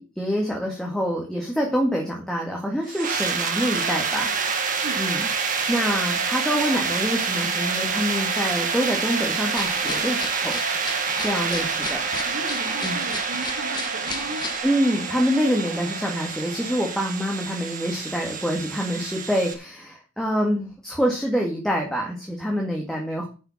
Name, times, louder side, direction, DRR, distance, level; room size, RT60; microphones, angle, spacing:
voice 1, 0.0-4.6 5.0-5.3 5.7-10.6 11.2-12.0 12.8-13.0 14.6-23.3, equal, 5° left, 2.0 m, -26 dB
sound 1, 2.9-19.5, right 5 dB, 40° right, 2.0 m, -27 dB
sound 2, 9.5-14.6, left 4 dB, 20° left, 1.6 m, -36 dB
voice 2, 12.3-14.5, right 2 dB, 85° right, 2.3 m, -36 dB
10.0 x 5.8 x 7.1 m
head